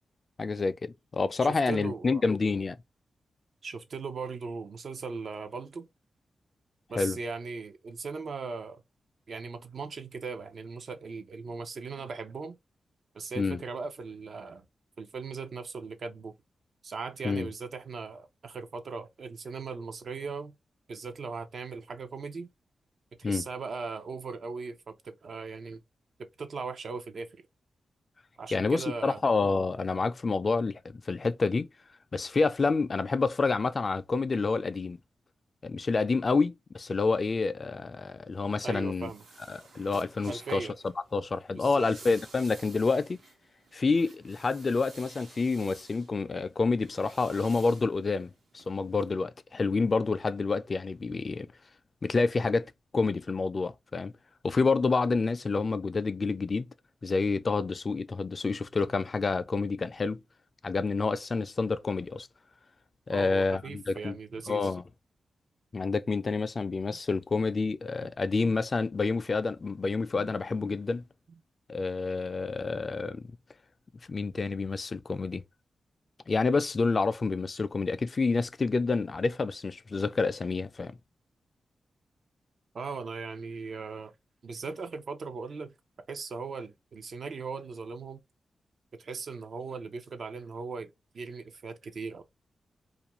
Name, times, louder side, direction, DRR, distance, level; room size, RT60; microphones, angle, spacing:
voice 1, 0.4-2.8 7.0-7.2 13.4-13.6 17.2-17.5 23.2-23.5 28.5-31.7 32.1-35.0 35.6-39.1 39.5-40.7 41.1-43.2 43.7-51.5 52.0-54.1 54.4-56.7 57.0-60.2 60.6-62.3 63.1-64.2 64.5-64.8 65.7-71.0 71.7-73.3 74.1-75.4 76.3-81.0, left 4 dB, 45° left, 0.3 m, -28 dB
voice 2, 1.4-2.2 3.6-5.9 6.9-8.8 9.3-12.6 13.1-14.7 15.0-16.3 16.8-20.5 20.9-22.5 23.2-25.8 26.4-27.3 28.4-29.2 38.6-39.2 40.3-40.7 41.5-41.9 63.1-64.7 66.9-67.0 68.0-68.1 70.2-70.3 71.3-71.4 82.7-84.1 84.4-85.7 86.1-88.2 89.0-92.2, right 4 dB, 65° right, 0.5 m, -38 dB
sound 1, 38.3-49.1, right 3 dB, 80° right, 0.9 m, -53 dB
2.4 x 2.2 x 2.9 m
cardioid pair, 60°, 0 cm